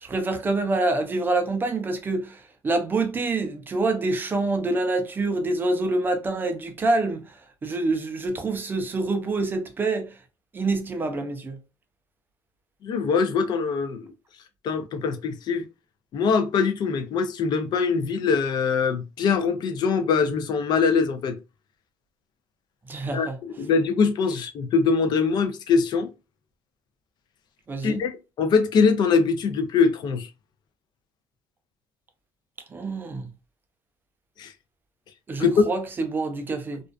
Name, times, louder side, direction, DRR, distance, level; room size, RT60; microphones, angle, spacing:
voice 1, 0.0-7.2 7.6-10.1 10.5-11.6 22.9-23.4 27.7-28.0 32.7-33.3 35.3-36.8, right 2 dB, 20° right, 0.4 m, -26 dB
voice 2, 12.8-14.1 14.6-15.6 16.1-21.4 23.1-26.1 27.8-30.3 34.4-34.5 35.4-35.6, left 5 dB, 50° left, 0.4 m, -23 dB
2.4 x 2.2 x 2.3 m
cardioid pair, 140°, 10 cm